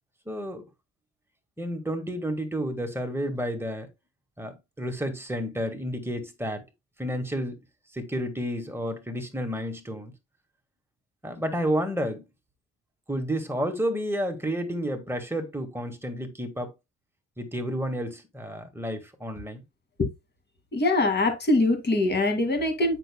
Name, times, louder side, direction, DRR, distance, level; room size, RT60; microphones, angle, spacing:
voice 1, 0.3-0.6 1.6-3.9 4.4-6.6 7.0-7.6 7.9-10.1 11.2-12.2 13.1-16.7 17.4-19.6, equal, 10° right, 1.7 m, -31 dB
voice 2, 20.7-23.0, left 2 dB, 35° left, 2.2 m, -23 dB
7.8 x 5.9 x 2.2 m
cardioid pair, 90°, 30 cm